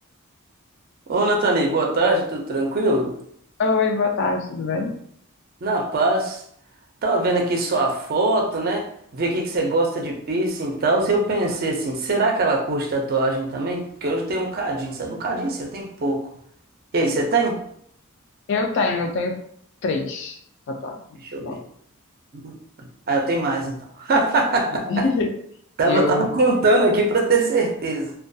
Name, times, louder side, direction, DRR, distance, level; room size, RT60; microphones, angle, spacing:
voice 1, 1.1-3.1 5.6-6.4 7.0-8.9 9.1-16.3 16.9-17.6 21.2-21.6 22.4-22.5 23.1-25.0 25.8-28.1, right 2 dB, 45° right, 1 dB, 0.4 m, -22 dB
voice 2, 3.6-5.0 18.5-19.4 19.8-20.4 20.7-21.0 21.4-21.6 24.9-25.3 25.8-26.4, left 3 dB, 55° left, 3 dB, 0.3 m, -23 dB
2.2 x 2.2 x 2.6 m, 0.66 s
head